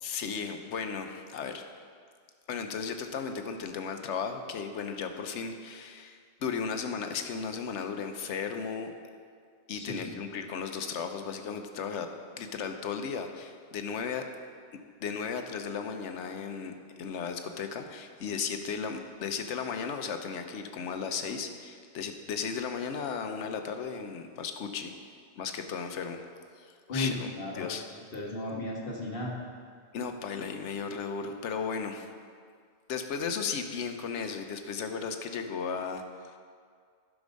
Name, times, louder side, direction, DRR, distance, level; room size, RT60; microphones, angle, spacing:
voice 1, 0.0-1.7 2.5-8.9 9.7-12.1 12.4-14.3 15.0-24.9 25.4-26.2 26.6-27.3 27.5-27.8 29.9-32.1 32.9-36.4, left 6 dB, 90° left, 6 dB, 1.1 m, -35 dB
voice 2, 9.7-10.1 26.9-27.7 28.1-29.3, left 2 dB, 55° left, -2 dB, 1.7 m, -34 dB
11.5 x 6.1 x 5.2 m, 2.1 s
omnidirectional pair, 1.2 m